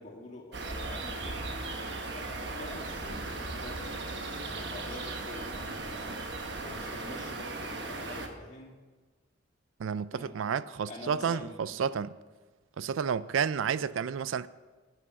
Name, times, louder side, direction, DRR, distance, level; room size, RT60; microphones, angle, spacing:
voice 1, 0.0-8.8 10.1-10.3 10.8-11.9, left 1 dB, 35° left, 2.3 m, -46 dB
sound 1, 0.5-8.3, right 3 dB, 55° right, 1.2 m, -37 dB
voice 2, 9.8-12.1 12.8-14.5, right 7 dB, 80° right, 0.4 m, -31 dB
13.0 x 8.6 x 4.8 m
head